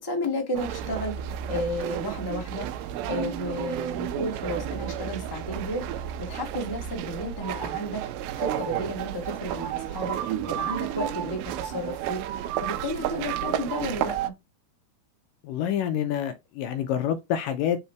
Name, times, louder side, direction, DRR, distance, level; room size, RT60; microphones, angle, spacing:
voice 1, 0.0-8.0 8.3-12.2 12.6-14.3, left 1 dB, 25° left, 0.4 m, -33 dB
sound 1, 0.6-14.3, right 10 dB, 85° right, 2.5 m, -32 dB
voice 2, 15.4-17.8, left 9 dB, 80° left, 2.1 m, -27 dB
5.6 x 4.1 x 4.6 m
omnidirectional pair, 4.3 m